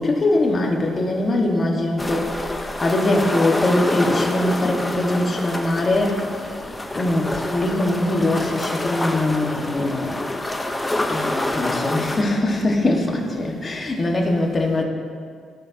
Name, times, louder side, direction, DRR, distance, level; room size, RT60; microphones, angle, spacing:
voice 1, 0.0-6.3 6.9-10.7 11.1-14.8, left 2 dB, 35° left, 0 dB, 1.5 m, -22 dB
sound 1, 2.0-12.2, left 1 dB, 15° left, 0.8 m, -27 dB
17.5 x 5.9 x 2.8 m, 2.1 s
cardioid pair, 90°, 0 cm